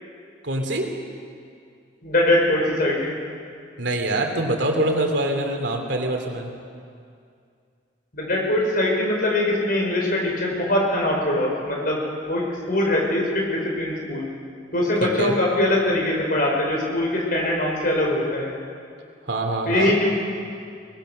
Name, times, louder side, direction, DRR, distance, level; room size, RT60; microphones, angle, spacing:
voice 1, 0.4-0.9 3.8-6.5 15.0-15.4 19.3-20.0, right 1 dB, 80° right, 3 dB, 2.8 m, -24 dB
voice 2, 2.0-3.2 8.1-14.3 14.7-18.5 19.7-20.1, left 1 dB, 55° left, -1 dB, 5.3 m, -22 dB
23.0 x 20.0 x 6.4 m, 2.3 s
head